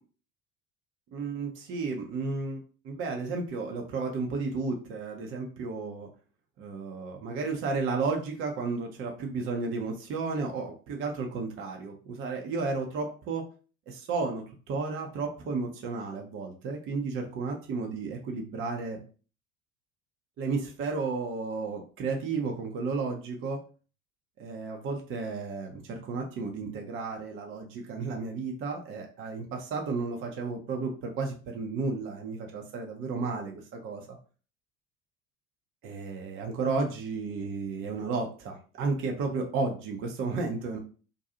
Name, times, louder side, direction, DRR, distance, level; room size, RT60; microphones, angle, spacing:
voice 1, 1.1-2.6 2.8-6.1 6.6-13.5 13.9-19.0 20.4-23.6 24.4-34.2 35.8-40.8, right 4 dB, 30° right, 1 dB, 0.5 m, -33 dB
2.5 x 2.3 x 2.7 m, 0.37 s
figure-of-eight pair, 65°, 45 cm